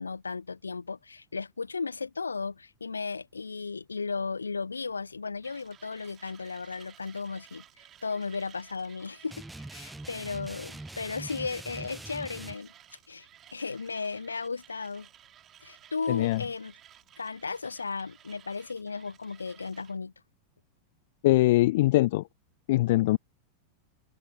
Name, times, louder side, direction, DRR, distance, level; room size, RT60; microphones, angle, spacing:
voice 1, 0.0-7.6 8.0-9.4 9.7-12.7 13.1-13.3 13.5-15.1 15.6-16.7 17.2-20.1, left 4 dB, 75° left, 0.9 m, -35 dB
Mechanisms, 5.4-20.0, right 11 dB, 30° right, 4.3 m, -56 dB
sound 1, 9.3-12.5, right 2 dB, 5° right, 0.7 m, -43 dB
voice 2, 16.1-16.4 21.2-22.2 22.7-23.2, left 17 dB, 55° left, 0.4 m, -22 dB
open air
figure-of-eight pair, 90°, 0 cm